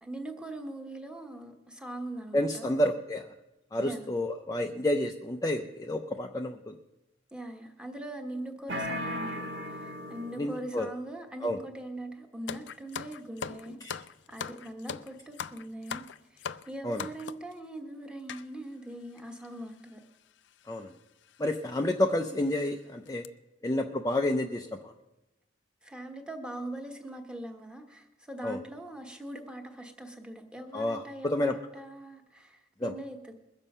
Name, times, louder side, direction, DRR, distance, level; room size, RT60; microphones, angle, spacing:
voice 1, 0.0-2.7 3.8-4.0 7.3-13.8 14.3-20.0 25.8-33.3, right 1 dB, 5° right, 4 dB, 1.2 m, -41 dB
voice 2, 2.3-3.3 3.7-6.8 10.4-10.9 11.4-11.6 13.8-14.0 16.8-17.0 20.7-20.9 21.4-23.3 23.6-24.9 28.4-28.6 30.7-31.6 32.8-32.9, left 1 dB, 20° left, 3 dB, 0.5 m, -30 dB
sound 1, 8.7-10.6, equal, 80° right, 1.5 m, -36 dB
sound 2, 12.5-17.5 18.3-18.5 19.2-19.3 19.4-19.6 20.6-20.8 21.3-21.4 21.9-22.0 22.4-22.7 23.0-23.3, left 7 dB, 70° left, 0.4 m, -40 dB
21.5 x 7.3 x 5.5 m, 0.99 s
head